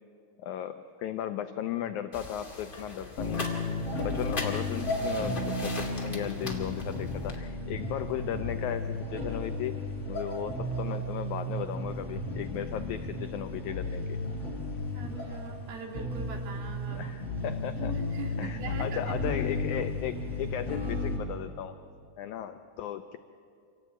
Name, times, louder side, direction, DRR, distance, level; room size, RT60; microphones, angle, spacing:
voice 1, 0.4-3.5 4.0-9.7 10.1-14.2 16.9-17.9 18.4-21.8 22.2-23.2, left 10 dB, 85° left, 9 dB, 1.7 m, -36 dB
sound 1, 2.1-7.4, left 2 dB, 20° left, 1.5 m, -40 dB
sound 2, 3.2-21.2, left 1 dB, 40° left, 4.9 m, -34 dB
voice 2, 14.9-17.1 17.7-19.0, right 4 dB, 80° right, 3 dB, 4.1 m, -42 dB
26.5 x 17.5 x 8.9 m, 2.5 s
omnidirectional pair, 4.3 m